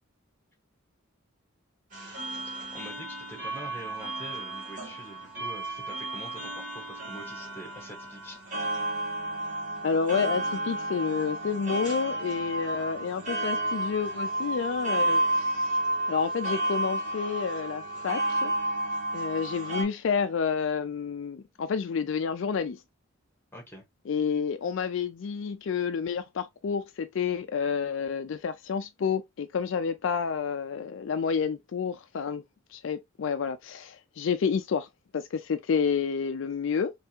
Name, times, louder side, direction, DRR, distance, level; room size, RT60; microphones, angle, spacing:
sound 1, 1.9-19.8, right 1 dB, 40° right, 1.8 m, -32 dB
voice 1, 2.4-8.4 23.5-23.8, equal, 10° left, 1.3 m, -45 dB
voice 2, 9.8-15.8 16.1-18.5 19.1-22.8 24.1-32.4 32.7-34.9 35.1-36.9, left 6 dB, 65° left, 0.4 m, -29 dB
3.4 x 3.3 x 2.8 m
head